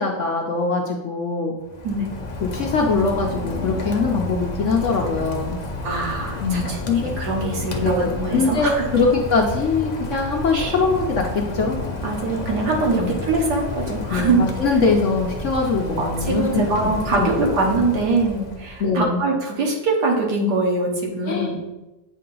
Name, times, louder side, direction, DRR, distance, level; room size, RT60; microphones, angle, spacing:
voice 1, 0.0-1.6 2.4-5.6 6.4-7.2 7.8-11.8 12.9-13.1 14.1-17.3 18.8-19.2 21.3-21.5, left 4 dB, 60° left, 1 dB, 0.9 m, -22 dB
Rain, 1.6-18.9, left 3 dB, 90° left, 0.3 m, -31 dB
voice 2, 5.8-8.8 10.5-10.7 12.0-14.4 16.0-21.6, right 3 dB, 75° right, -1 dB, 1.8 m, -23 dB
8.3 x 2.9 x 5.3 m, 1.0 s
omnidirectional pair, 1.8 m